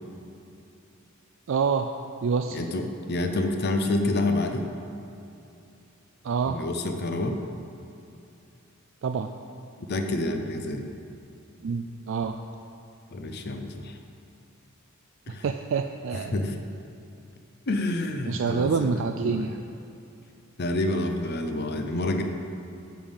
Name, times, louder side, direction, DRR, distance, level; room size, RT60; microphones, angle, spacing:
voice 1, 1.5-1.9 2.2-2.6 6.2-6.6 9.0-9.3 11.6-12.4 15.3-16.6 18.3-19.6, right 5 dB, 65° right, 6 dB, 0.3 m, -27 dB
voice 2, 2.5-4.7 6.5-7.4 9.9-10.9 13.1-14.0 15.3-15.4 16.3-16.6 17.7-19.5 20.6-22.2, left 2 dB, 50° left, 5 dB, 0.7 m, -28 dB
9.0 x 5.3 x 7.1 m, 2.7 s
head